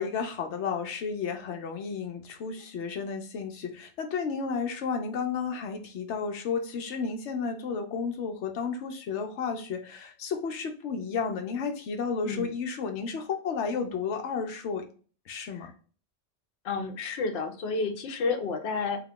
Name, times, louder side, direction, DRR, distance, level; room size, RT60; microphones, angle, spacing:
voice 1, 0.0-14.8 15.3-15.7, left 5 dB, 85° left, 4 dB, 0.9 m, -32 dB
voice 2, 16.6-19.0, left 4 dB, 65° left, 4 dB, 0.9 m, -30 dB
3.3 x 2.4 x 3.5 m, 0.39 s
omnidirectional pair, 1.2 m